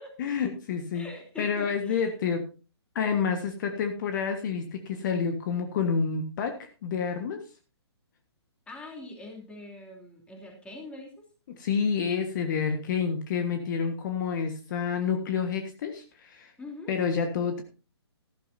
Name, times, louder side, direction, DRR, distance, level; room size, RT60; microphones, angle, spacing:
voice 1, 0.2-1.1 1.4-2.4 2.9-7.4 11.5-16.5 16.9-17.6, left 6 dB, 45° left, 6 dB, 1.5 m, -29 dB
voice 2, 0.9-2.1 8.7-11.2 16.6-16.9, left 2 dB, 10° left, 1 dB, 3.0 m, -43 dB
14.0 x 13.0 x 2.8 m, 0.33 s
hypercardioid pair, 140°, 14 cm